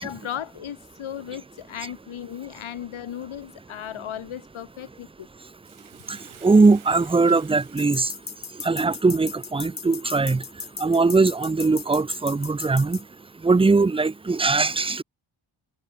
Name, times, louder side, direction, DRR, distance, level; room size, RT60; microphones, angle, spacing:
voice 1, 0.0-5.3, left 10 dB, 85° left, 1.9 m, -36 dB
Bathtub (filling or washing), 5.6-10.2 10.7-10.8, right 9 dB, 85° right, 2.8 m, -52 dB
voice 2, 6.1-8.1 8.6-10.4 10.8-13.0 13.4-15.0, right 3 dB, 10° right, 0.5 m, -20 dB
sound 1, 7.8-13.0, left 5 dB, 45° left, 2.3 m, -36 dB
cardioid pair, 85°, 47 cm